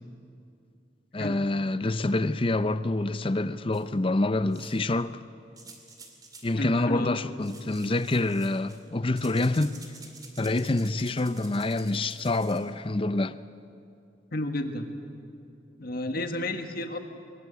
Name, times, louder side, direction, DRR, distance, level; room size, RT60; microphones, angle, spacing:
voice 1, 1.1-5.2 6.4-9.8 10.4-13.4, left 2 dB, 30° left, 0.6 m, -27 dB
sound 1, 3.7-3.8 4.5-4.9 5.6-6.5 7.4-8.9 9.1-12.6, right 3 dB, 20° right, 2.6 m, -49 dB
voice 2, 6.6-7.2 14.3-14.9 15.8-17.0, left 1 dB, 50° left, 1.7 m, -31 dB
22.0 x 20.5 x 8.3 m
head